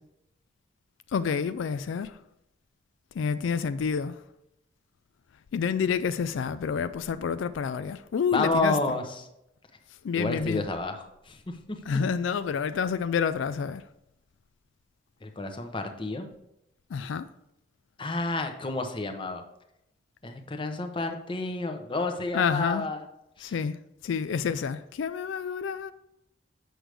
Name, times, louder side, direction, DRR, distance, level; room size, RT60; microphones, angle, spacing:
voice 1, 1.1-2.2 3.1-4.2 5.5-9.0 10.0-10.6 11.9-13.8 16.9-17.3 22.3-22.9 23.4-25.9, left 6 dB, 85° left, 0.3 m, -29 dB
voice 2, 8.3-9.0 10.1-11.4 15.2-16.3 18.0-19.4 20.2-23.0 23.4-23.5, left 2 dB, 25° left, 0.7 m, -30 dB
7.8 x 6.2 x 3.4 m
head